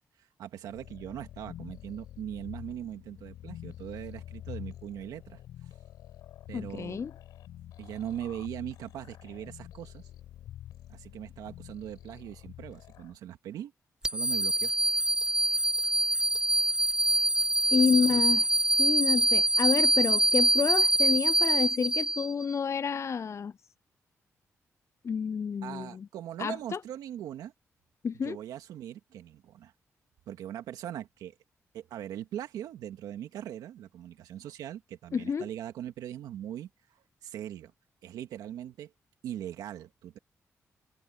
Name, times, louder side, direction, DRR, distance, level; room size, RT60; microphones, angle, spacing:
voice 1, 0.0-5.4 6.5-7.0 7.8-10.1 10.9-13.7 14.0-14.7 18.0-18.2 25.6-27.5 28.2-29.7 30.3-31.4 31.7-37.7 38.0-38.9 39.2-40.2, right 11 dB, 90° right, 2.0 m, -40 dB
sound 1, 0.7-13.2, left 12 dB, 90° left, 4.3 m, -47 dB
voice 2, 6.5-7.1 17.7-18.5 18.8-23.5 25.0-25.9 26.4-26.8 28.0-28.4 35.1-35.4, left 6 dB, 50° left, 0.4 m, -29 dB
sound 2, 14.0-22.5, right 1 dB, 10° right, 0.5 m, -25 dB
supercardioid pair, 50°, 6 cm